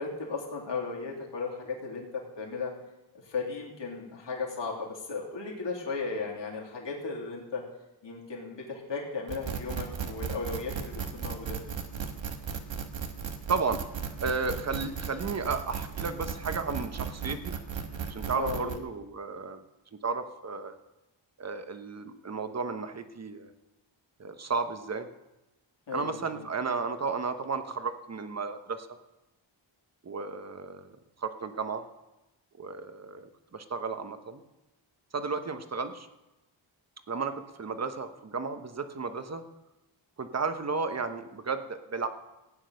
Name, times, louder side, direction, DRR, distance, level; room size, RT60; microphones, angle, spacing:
voice 1, 0.0-2.7 3.2-7.6 8.0-11.7 18.3-18.8 25.9-26.4, left 4 dB, 65° left, -2 dB, 3.2 m, -36 dB
sound 1, 9.3-18.8, right 6 dB, 75° right, 1.5 m, -36 dB
voice 2, 13.5-13.8 14.2-17.6 18.1-19.6 19.9-20.7 21.4-23.5 24.2-25.1 25.9-28.9 30.0-30.9 31.2-31.8 32.6-34.4 35.1-36.1 37.1-39.4 40.2-42.1, right 4 dB, 35° right, 9 dB, 1.1 m, -33 dB
16.0 x 9.0 x 6.4 m, 0.99 s
wide cardioid pair, 130°, 46 cm